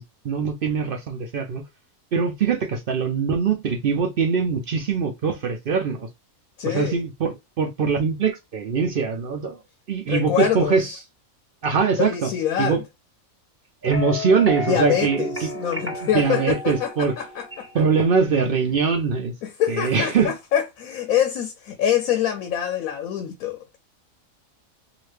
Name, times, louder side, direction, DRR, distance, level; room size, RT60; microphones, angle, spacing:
voice 1, 0.2-1.6 2.1-6.1 6.6-9.6 9.9-10.9 11.6-12.3 12.6-12.8 13.8-15.5 16.0-17.1 17.7-19.3 19.7-20.3, right 5 dB, 65° right, 0.5 m, -22 dB
voice 2, 6.6-7.0 10.1-11.0 12.0-12.8 14.7-17.7 19.4-23.8, left 10 dB, 85° left, 1.0 m, -25 dB
sound 1, 13.8-17.9, left 1 dB, 10° right, 0.8 m, -33 dB
2.8 x 2.4 x 3.2 m
omnidirectional pair, 1.4 m